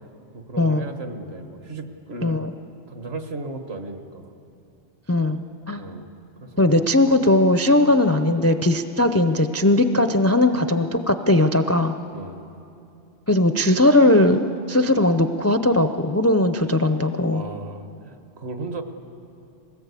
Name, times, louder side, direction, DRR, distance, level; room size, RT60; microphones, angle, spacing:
voice 1, 0.3-2.4 2.9-4.3 5.8-6.1 6.4-6.7 12.1-12.4 17.3-18.8, right 2 dB, 65° right, 6 dB, 1.6 m, -35 dB
voice 2, 5.1-5.4 5.7-5.8 6.6-11.9 13.3-17.4, left 1 dB, 20° left, 8 dB, 0.4 m, -19 dB
21.5 x 18.0 x 8.3 m, 2.8 s
omnidirectional pair, 1.2 m